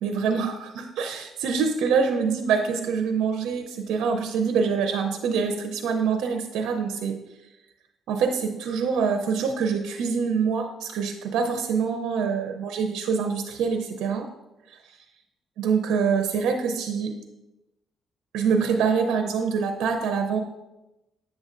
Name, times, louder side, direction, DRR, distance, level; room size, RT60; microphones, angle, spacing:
voice 1, 0.0-7.2 8.1-14.3 14.7-14.8 15.6-17.1 18.3-20.4, right 6 dB, 85° right, 5 dB, 0.5 m, -25 dB
8.2 x 6.4 x 2.5 m, 0.98 s
cardioid pair, 90°, 0 cm